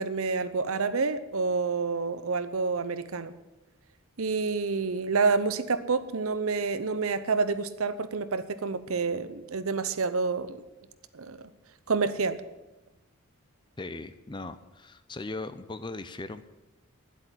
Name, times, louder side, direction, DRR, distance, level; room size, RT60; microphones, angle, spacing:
voice 1, 0.0-3.3 4.2-10.6 11.1-11.4 11.9-12.4, right 4 dB, 75° right, 13 dB, 0.8 m, -28 dB
voice 2, 13.8-16.4, left 2 dB, 20° left, 12 dB, 0.5 m, -38 dB
10.5 x 8.1 x 10.0 m, 1.0 s
head